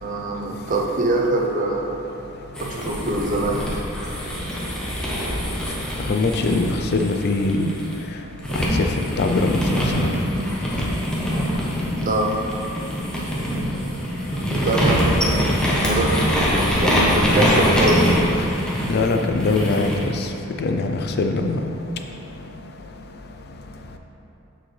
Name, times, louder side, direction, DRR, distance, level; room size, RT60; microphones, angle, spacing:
voice 1, 0.0-2.0 2.8-3.6 12.0-12.3 13.2-13.3 14.3-16.1 16.8-18.0, right 2 dB, 40° right, -1 dB, 0.7 m, -23 dB
sound 1, 2.5-7.9 8.4-20.1, equal, 5° left, 1.0 m, -23 dB
voice 2, 6.1-6.7 6.9-7.7 8.5-8.6 9.2-9.6 10.0-10.1 18.9-19.9 20.6-21.6, left 3 dB, 50° left, 5 dB, 0.4 m, -21 dB
7.1 x 6.2 x 3.3 m, 2.8 s
head